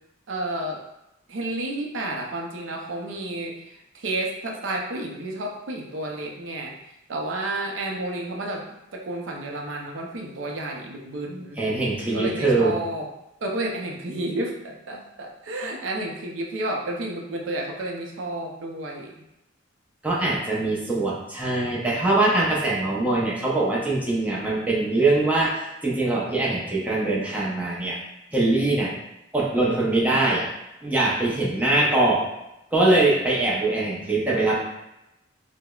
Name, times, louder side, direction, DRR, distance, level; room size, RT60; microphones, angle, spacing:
voice 1, 0.3-0.8 1.3-6.7 7.1-8.6 8.9-11.6 12.1-13.1 13.4-19.2, right 1 dB, 80° right, 1 dB, 0.5 m, -31 dB
voice 2, 11.6-12.7 20.0-28.0 28.3-28.9 29.3-30.5 30.8-32.2 32.7-34.6, right 2 dB, 10° right, -6 dB, 0.6 m, -22 dB
4.7 x 2.0 x 2.3 m, 0.88 s
head